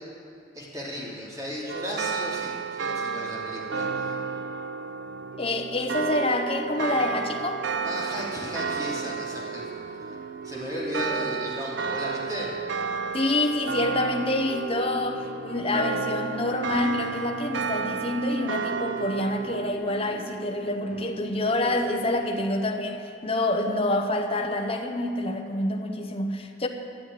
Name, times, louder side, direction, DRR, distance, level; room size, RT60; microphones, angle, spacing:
voice 1, 0.5-4.1 7.8-9.6 10.4-12.5, equal, 20° right, -5 dB, 3.0 m, -35 dB
sound 1, 1.7-19.7, right 5 dB, 70° right, 0.7 m, -32 dB
sound 2, 4.4-22.5, right 2 dB, 45° right, 0.9 m, -41 dB
voice 2, 5.4-7.7 13.1-26.7, left 2 dB, 30° left, 2 dB, 0.9 m, -27 dB
13.0 x 8.3 x 9.4 m, 2.8 s
head